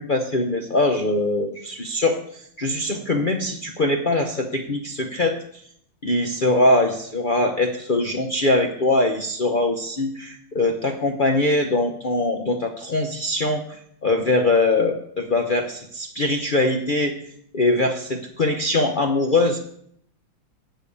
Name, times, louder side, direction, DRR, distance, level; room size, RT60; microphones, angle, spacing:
voice 1, 0.0-5.4 6.0-17.1 17.5-19.6, left 2 dB, 75° left, 3 dB, 0.4 m, -22 dB
10.0 x 5.7 x 8.4 m, 0.69 s
omnidirectional pair, 2.1 m